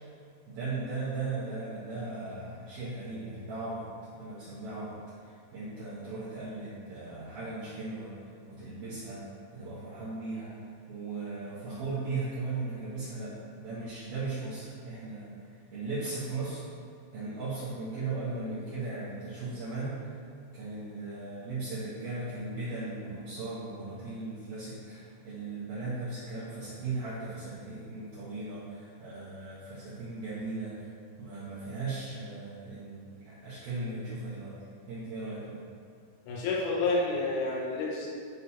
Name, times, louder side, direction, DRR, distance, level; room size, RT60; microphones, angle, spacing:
voice 1, 0.5-3.8 4.2-8.1 8.5-15.3 15.7-16.6 17.1-20.1 20.5-30.9 31.2-34.5 34.9-35.6, right 3 dB, 65° right, -11 dB, 2.7 m, -37 dB
voice 2, 36.3-38.1, left 3 dB, 85° left, -4 dB, 3.7 m, -29 dB
11.5 x 3.9 x 4.2 m, 2.2 s
omnidirectional pair, 5.6 m